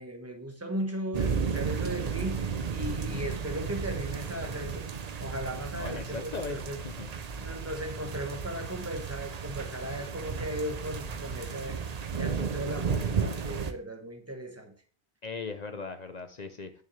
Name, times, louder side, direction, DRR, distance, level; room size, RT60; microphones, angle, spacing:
voice 1, 0.0-4.9 5.2-6.8 7.4-14.7, equal, 15° right, 1.2 m, -37 dB
sound 1, 1.1-13.7, right 6 dB, 45° right, 0.6 m, -34 dB
voice 2, 5.7-6.6 6.8-7.1 15.2-16.8, left 4 dB, 45° left, 0.7 m, -38 dB
9.0 x 7.0 x 3.2 m
omnidirectional pair, 1.1 m